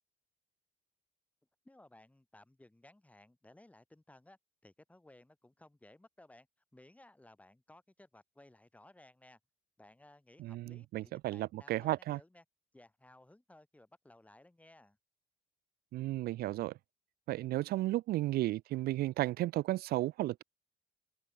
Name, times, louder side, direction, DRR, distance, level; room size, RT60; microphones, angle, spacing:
voice 1, 1.6-6.5 6.7-9.4 9.8-12.4 12.7-15.0, left 1 dB, 10° left, 7.5 m, -60 dB
voice 2, 10.4-12.2 15.9-16.8 17.3-20.4, right 16 dB, 65° right, 0.4 m, -34 dB
open air
cardioid pair, 110°, 17 cm